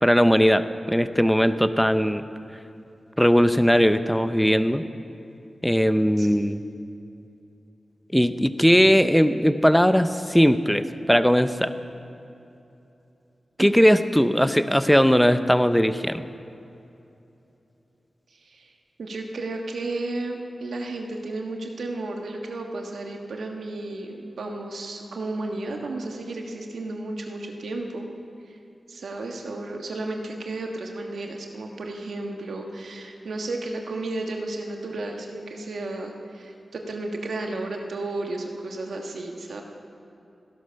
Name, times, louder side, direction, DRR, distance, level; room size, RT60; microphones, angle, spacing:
voice 1, 0.0-2.2 3.2-4.8 5.6-6.6 8.1-11.7 13.6-16.2, equal, 5° left, 11 dB, 0.6 m, -19 dB
voice 2, 6.2-6.6 13.6-14.0 18.3-18.7 19.0-28.1 28.5-28.6 28.9-39.6, right 2 dB, 90° right, 2 dB, 1.4 m, -33 dB
15.0 x 12.0 x 5.7 m, 2.8 s
wide cardioid pair, 70°, 0 cm